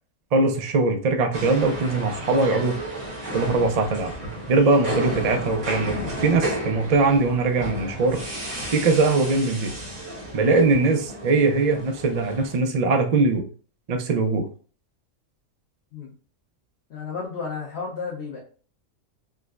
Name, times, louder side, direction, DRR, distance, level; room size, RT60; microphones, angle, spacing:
voice 1, 0.3-2.8 3.3-4.1 4.5-5.9 6.2-8.2 8.7-9.7 10.3-13.4 13.9-14.5, right 3 dB, 65° right, 5 dB, 0.4 m, -21 dB
sound 1, 1.3-12.6, equal, 80° right, 1.7 m, -32 dB
voice 2, 16.9-18.4, left 5 dB, 50° left, -4 dB, 1.0 m, -32 dB
4.6 x 2.2 x 2.3 m, 0.39 s
omnidirectional pair, 1.4 m